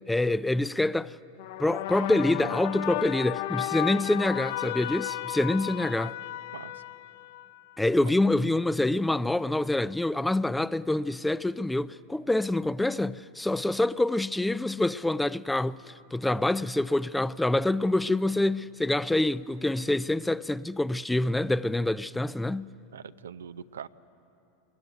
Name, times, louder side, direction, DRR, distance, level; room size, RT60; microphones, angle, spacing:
voice 1, 0.1-1.2 1.6-6.1 7.8-22.7, left 2 dB, 5° left, 0.5 m, -26 dB
sound 1, 1.4-7.8, left 16 dB, 65° left, 0.6 m, -34 dB
voice 2, 6.5-6.8 8.0-8.1 22.9-23.9, right 7 dB, 85° right, 0.6 m, -42 dB
25.0 x 21.0 x 9.2 m
hypercardioid pair, 95°, 0 cm